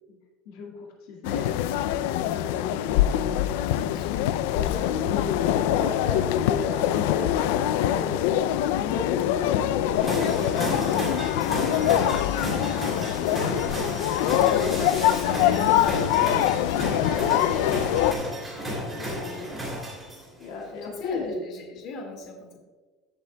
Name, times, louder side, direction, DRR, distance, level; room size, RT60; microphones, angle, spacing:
voice 1, 0.5-3.0 4.5-8.2 8.8-11.2 11.5-11.7 12.0-13.6 14.5-14.7 17.3-17.4 18.6-19.8 20.4-21.4, left 4 dB, 75° left, 0 dB, 1.9 m, -36 dB
sound 1, 1.2-18.1, left 12 dB, 90° left, 0.4 m, -24 dB
voice 2, 3.7-4.2 4.5-5.2 8.7-8.9 14.4-16.0 18.6-19.5 20.6-22.6, left 3 dB, 45° left, 1 dB, 1.8 m, -38 dB
sound 2, 10.0-20.4, equal, 5° right, 3.0 m, -33 dB
15.5 x 7.7 x 2.3 m, 1.3 s
cardioid pair, 170°, 0 cm